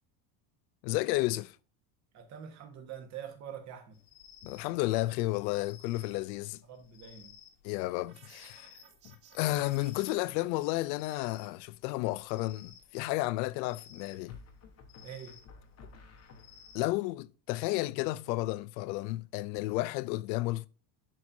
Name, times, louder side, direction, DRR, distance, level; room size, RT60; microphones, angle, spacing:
voice 1, 0.8-1.6 4.4-6.6 7.6-8.7 9.0-14.4 16.7-20.7, left 18 dB, 90° left, 0.6 m, -32 dB
voice 2, 2.1-4.0 6.7-7.4 15.0-15.4, right 8 dB, 35° right, 1.4 m, -45 dB
sound 1, 3.9-16.8, left 8 dB, 60° left, 1.4 m, -57 dB
sound 2, 8.1-10.2, right 7 dB, 55° right, 3.6 m, -57 dB
sound 3, 11.6-12.1 14.3-16.9, left 3 dB, 30° left, 1.0 m, -54 dB
11.0 x 4.4 x 2.6 m
cardioid pair, 160°, 49 cm